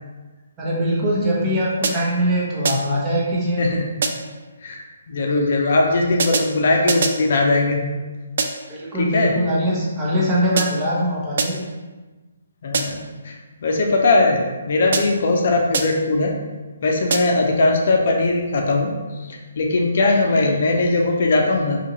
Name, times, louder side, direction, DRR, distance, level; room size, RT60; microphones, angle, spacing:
voice 1, 0.6-3.6 8.7-11.6, equal, 20° right, -6 dB, 0.9 m, -22 dB
sound 1, 1.8-2.3 2.7-3.1 4.0-4.4 6.2-7.3 8.4-8.8 10.6-11.0 11.4-11.8 12.7-13.2 14.9-15.4 15.7-16.2 17.1-17.5, right 4 dB, 55° right, 0.3 m, -25 dB
voice 2, 4.6-7.8 9.0-9.3 12.6-13.0 13.2-16.3 16.8-18.9 19.3-21.8, left 2 dB, 55° left, 1 dB, 0.5 m, -19 dB
2.8 x 2.6 x 4.0 m, 1.2 s
hypercardioid pair, 155°, 0 cm